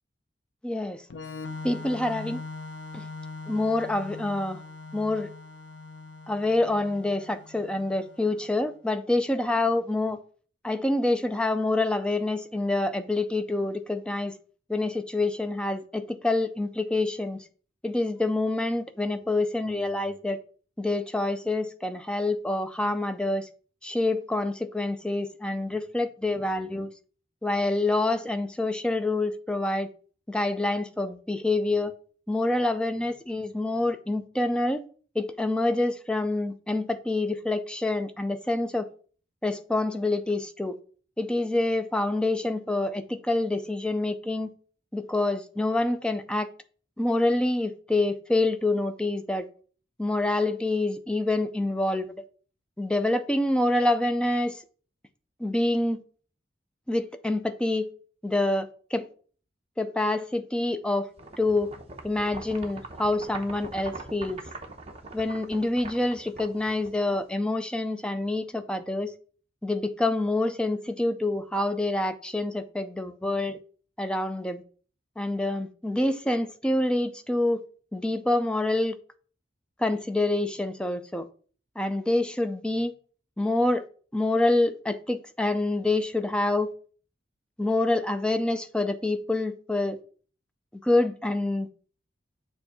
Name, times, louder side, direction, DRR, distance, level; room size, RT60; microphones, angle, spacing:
voice 1, 0.6-1.0 1.6-2.4 2.9-3.1 3.5-4.6 4.9-5.3 6.3-10.2 10.6-14.3 14.7-17.4 17.8-20.4 20.8-23.5 23.8-26.9 27.4-29.9 30.3-31.9 32.3-34.8 35.2-38.9 39.4-40.8 41.2-44.5 44.9-46.5 47.0-49.5 50.0-52.1 52.8-54.6 55.4-56.0 56.9-57.9 58.2-59.1 59.8-61.1 61.4-61.7 62.0-64.4 65.1-69.1 69.6-73.6 74.0-74.6 75.2-77.6 77.9-79.0 79.8-81.3 81.8-82.9 83.4-83.9 84.1-86.7 87.6-90.0 90.8-91.8, left 2 dB, 5° left, 0.4 m, -27 dB
Organ, 1.1-8.6, left 3 dB, 85° left, 0.6 m, -41 dB
sound 1, 61.2-67.3, right 3 dB, 35° right, 0.8 m, -43 dB
6.9 x 2.6 x 5.3 m
head